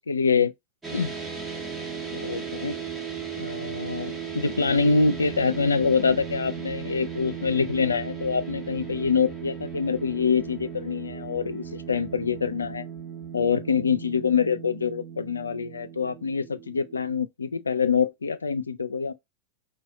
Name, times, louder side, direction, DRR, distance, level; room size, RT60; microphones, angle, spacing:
voice 1, 0.1-0.5 0.9-1.1 2.1-2.8 3.4-12.8 13.3-19.1, left 5 dB, 75° left, 0.4 m, -25 dB
sound 1, 0.8-17.2, right 7 dB, 10° right, 1.4 m, -37 dB
4.7 x 2.3 x 3.9 m
figure-of-eight pair, 90°, 0 cm